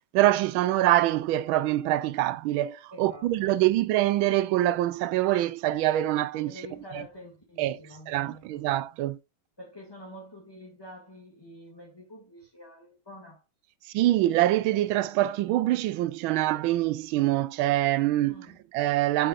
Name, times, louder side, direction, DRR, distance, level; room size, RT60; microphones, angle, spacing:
voice 1, 0.1-6.5 6.9-7.0 7.6-7.8 8.1-9.2 13.9-18.5 18.7-19.3, right 15 dB, 90° right, 1.4 m, -25 dB
voice 2, 2.9-3.6 6.4-8.6 9.6-13.4 18.3-18.6, equal, 10° left, 2.0 m, -47 dB
7.9 x 7.6 x 2.5 m
omnidirectional pair, 2.2 m